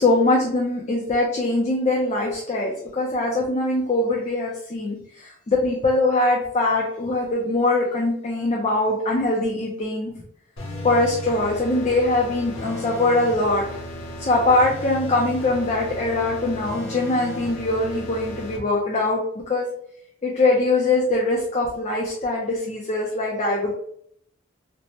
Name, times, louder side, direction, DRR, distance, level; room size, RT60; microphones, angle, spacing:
voice 1, 0.0-10.1 10.8-13.8 14.2-19.7 20.2-23.7, left 2 dB, 35° left, -3 dB, 0.4 m, -22 dB
sound 1, 10.6-18.6, left 1 dB, 85° left, 0.6 m, -35 dB
3.2 x 2.0 x 2.7 m, 0.68 s
head